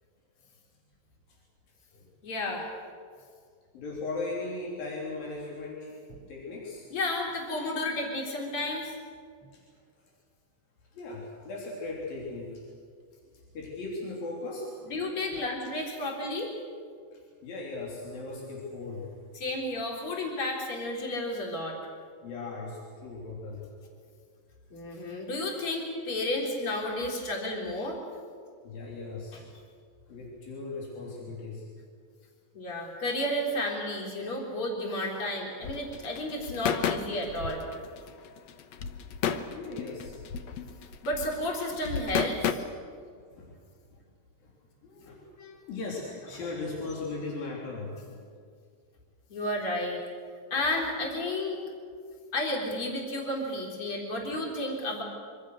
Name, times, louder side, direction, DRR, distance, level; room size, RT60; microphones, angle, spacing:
voice 1, 2.2-2.7 6.9-8.9 14.9-16.5 19.4-21.8 24.7-28.0 29.3-29.4 32.5-37.7 41.0-42.6 45.4-45.7 49.3-50.0 50.5-51.6 52.3-55.0, left 1 dB, 40° left, -1 dB, 4.6 m, -32 dB
voice 2, 3.7-6.0 6.3-6.9 9.5-9.6 10.9-12.6 13.5-14.9 17.1-19.1 22.2-23.7 28.6-29.4 30.1-31.7 39.5-40.1 40.9-41.0 43.3-43.6 44.4-44.5 44.8-45.3 45.5-48.2, left 3 dB, 85° left, -3 dB, 5.3 m, -38 dB
sound 1, 35.6-42.5, left 8 dB, 65° left, 1.9 m, -32 dB
26.0 x 25.0 x 6.5 m, 2.1 s
omnidirectional pair, 4.0 m